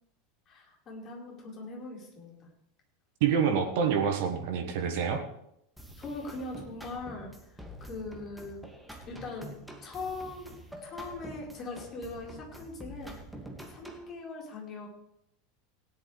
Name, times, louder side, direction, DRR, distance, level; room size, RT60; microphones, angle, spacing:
voice 1, 0.5-2.5 6.0-8.6 9.1-9.5 9.8-13.1 13.7-14.9, left 3 dB, 35° left, -2 dB, 4.4 m, -41 dB
voice 2, 3.2-5.2, right 7 dB, 55° right, 5 dB, 1.5 m, -27 dB
sound 1, 5.8-14.1, right 1 dB, ahead, 2.1 m, -47 dB
18.0 x 11.0 x 3.3 m, 0.76 s
figure-of-eight pair, 80°, 0 cm